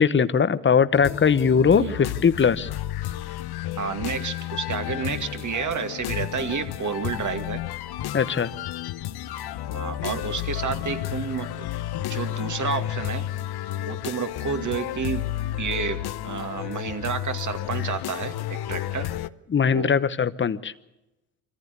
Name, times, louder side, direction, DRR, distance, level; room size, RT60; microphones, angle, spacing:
voice 1, 0.0-2.7 8.1-8.5 19.5-20.7, left 6 dB, 25° left, 13 dB, 1.0 m, -20 dB
sound 1, 0.9-19.3, left 13 dB, 55° left, 0.9 m, -32 dB
voice 2, 1.7-2.1 3.8-7.6 9.7-11.7 12.1-13.3 13.9-15.3 15.6-19.1 19.6-19.9, right 6 dB, 40° right, 8 dB, 2.3 m, -30 dB
24.0 x 14.5 x 8.2 m, 0.95 s
supercardioid pair, 70°, 47 cm